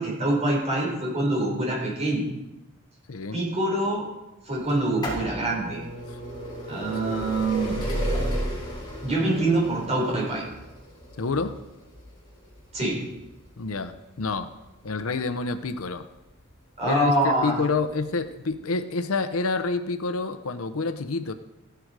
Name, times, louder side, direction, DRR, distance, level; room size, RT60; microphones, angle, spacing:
voice 1, 0.0-2.3 3.3-4.0 4.5-5.8 6.7-7.7 9.0-10.4 12.7-13.0 16.8-17.5, right 2 dB, 30° right, -3 dB, 5.2 m, -25 dB
sound 1, 4.7-16.3 17.2-17.3 18.2-18.3 18.5-18.6, equal, 20° left, 4.9 m, -33 dB
voice 2, 11.2-11.5 13.6-14.5 14.8-16.0 16.8-21.3, left 4 dB, 85° left, 10 dB, 0.7 m, -28 dB
15.0 x 10.5 x 4.8 m, 0.98 s
head